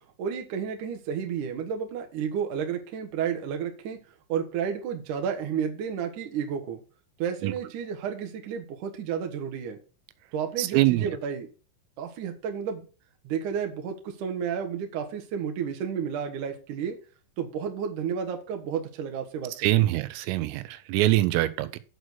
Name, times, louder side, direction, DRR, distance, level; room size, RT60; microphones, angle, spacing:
voice 1, 0.2-4.0 4.3-6.8 7.2-9.8 10.3-11.5 12.0-12.9 13.2-17.0 17.4-19.5, right 7 dB, 70° right, 2.0 m, -31 dB
voice 2, 10.6-11.1 19.6-21.8, right 17 dB, 85° right, 3.4 m, -24 dB
7.9 x 6.5 x 6.1 m
omnidirectional pair, 5.9 m